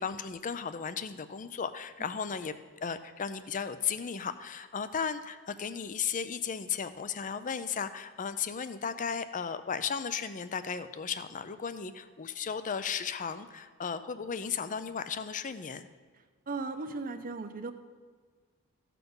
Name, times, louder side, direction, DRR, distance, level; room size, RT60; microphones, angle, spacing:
voice 1, 0.0-2.5 2.8-15.9, left 6 dB, 35° left, 12 dB, 0.5 m, -35 dB
voice 2, 16.5-17.7, right 3 dB, 40° right, 7 dB, 0.7 m, -36 dB
15.0 x 5.9 x 5.4 m, 1.5 s
head